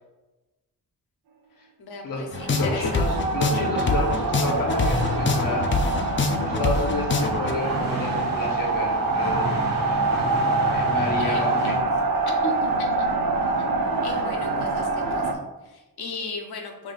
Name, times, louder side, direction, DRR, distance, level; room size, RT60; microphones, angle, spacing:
voice 1, 1.8-3.1 11.2-11.9 12.3-13.1 14.0-16.9, left 3 dB, 80° left, 3 dB, 0.8 m, -36 dB
sound 1, 2.3-7.5, left 3 dB, 35° left, 0.4 m, -25 dB
sound 2, 2.3-15.3, right 3 dB, 65° right, 0.6 m, -25 dB
voice 2, 2.5-5.7 6.2-10.0 10.6-11.7, left 1 dB, 60° left, -1 dB, 1.1 m, -30 dB
sound 3, 3.9-11.8, equal, 45° right, 1.5 m, -32 dB
4.5 x 3.5 x 2.5 m, 1.1 s
cardioid pair, 60°, 37 cm